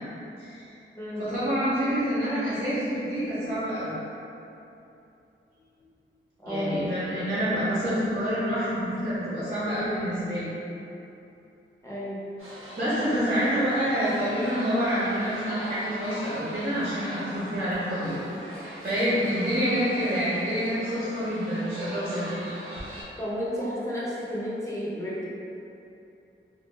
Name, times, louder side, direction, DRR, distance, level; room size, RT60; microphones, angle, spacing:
voice 1, 1.2-3.9 6.4-10.5 12.8-18.2 18.8-22.4, equal, 45° right, -11 dB, 0.9 m, -27 dB
voice 2, 6.4-6.8 11.8-12.2 23.2-25.2, equal, 15° left, -8 dB, 0.6 m, -31 dB
sound 1, 12.4-23.0, right 1 dB, 75° right, 0.7 m, -40 dB
2.3 x 2.2 x 3.3 m, 2.8 s
wide cardioid pair, 135°, 21 cm